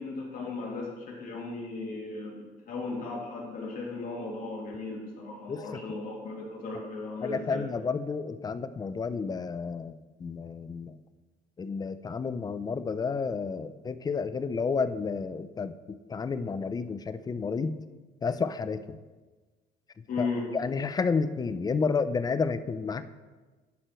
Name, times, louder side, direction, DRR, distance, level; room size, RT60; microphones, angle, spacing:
voice 1, 0.0-7.7 20.1-20.4, left 3 dB, 55° left, -3 dB, 2.4 m, -36 dB
voice 2, 7.2-11.0 11.6-17.8 18.2-19.0 20.2-20.3 20.5-23.0, left 5 dB, 25° left, 12 dB, 0.4 m, -31 dB
11.0 x 4.5 x 4.4 m, 1.3 s
cardioid pair, 110°, 17 cm